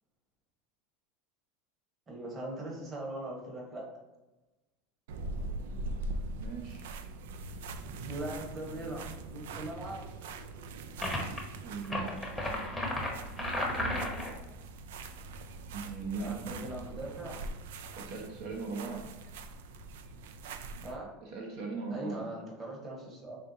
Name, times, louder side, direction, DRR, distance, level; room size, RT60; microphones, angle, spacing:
voice 1, 2.1-3.8 8.0-9.0 9.3-10.1 16.2-17.4 20.8-21.1 21.9-23.4, right 1 dB, 25° right, -1 dB, 1.1 m, -40 dB
sound 1, 5.1-21.0, right 2 dB, 80° right, 0.3 m, -42 dB
voice 2, 6.3-6.9 11.6-12.2 15.7-16.7 18.0-19.1 21.2-22.3, right 4 dB, 60° right, 0 dB, 0.8 m, -39 dB
sound 2, 11.0-11.4 11.8-14.4, left 1 dB, 5° left, 0.8 m, -33 dB
4.3 x 3.5 x 2.7 m, 1.1 s
supercardioid pair, 130°, 0 cm